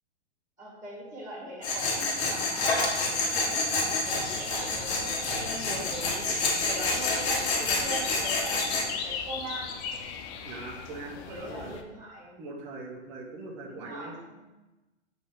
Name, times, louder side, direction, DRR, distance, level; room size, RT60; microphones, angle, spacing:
voice 1, 0.6-6.3 6.6-9.7 11.3-12.4 13.7-14.4, right 1 dB, 10° right, -5 dB, 2.0 m, -41 dB
Tools, 1.6-8.9, left 3 dB, 60° left, 2.1 m, -28 dB
sound 1, 4.0-11.8, left 6 dB, 25° left, 0.4 m, -39 dB
voice 2, 10.4-11.8 12.4-14.1, right 3 dB, 35° right, -1 dB, 1.2 m, -41 dB
8.0 x 4.3 x 3.8 m, 1.1 s
hypercardioid pair, 135°, 35 cm